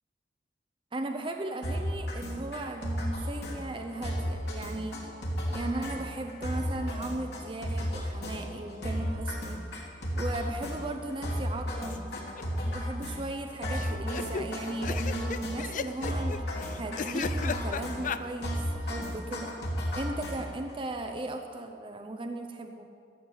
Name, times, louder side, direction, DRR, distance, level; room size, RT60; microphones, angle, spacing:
voice 1, 0.9-5.0 5.5-9.6 10.2-12.1 12.6-16.4 16.8-19.6 19.9-22.9, right 2 dB, 30° right, 5 dB, 0.6 m, -37 dB
sound 1, 1.6-20.7, equal, 65° left, 2.9 m, -34 dB
sound 2, 11.9-12.4 12.7-12.8 13.0-13.1 13.7-18.2, left 5 dB, 50° left, 0.4 m, -35 dB
14.0 x 7.3 x 8.0 m, 2.4 s
head